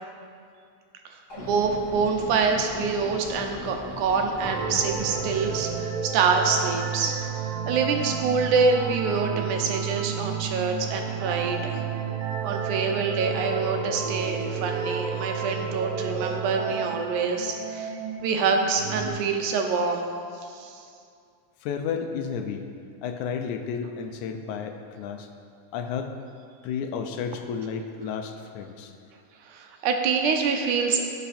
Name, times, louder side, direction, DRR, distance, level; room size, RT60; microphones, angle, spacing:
voice 1, 1.1-7.2 7.7-11.8 12.4-17.9 18.2-20.1 20.5-20.8 29.5-31.0, right 5 dB, 80° right, 3 dB, 2.4 m, -26 dB
sound 1, 1.3-5.7, left 3 dB, 30° left, 1.8 m, -38 dB
sound 2, 4.4-19.1, right 7 dB, 65° right, 1.6 m, -31 dB
voice 2, 21.6-22.7 23.0-25.3 25.7-26.1 26.6-28.9, left 6 dB, 80° left, 6 dB, 2.1 m, -32 dB
16.5 x 5.8 x 4.3 m, 2.3 s
omnidirectional pair, 3.5 m